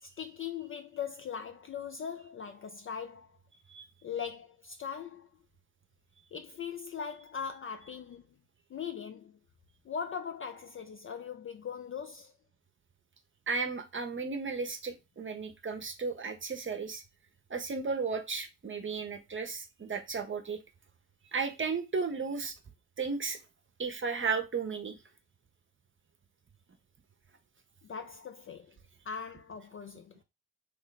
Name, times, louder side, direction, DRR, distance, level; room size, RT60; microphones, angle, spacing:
voice 1, 0.0-3.4 4.0-5.3 6.3-8.3 8.7-9.4 9.8-12.3 27.8-28.8 29.0-30.2, left 7 dB, 30° left, 0.4 m, -40 dB
voice 2, 13.5-17.0 17.5-20.6 21.3-22.5 23.0-23.4 23.8-24.9, right 4 dB, 30° right, 0.8 m, -34 dB
3.1 x 2.1 x 4.0 m
hypercardioid pair, 45°, 43 cm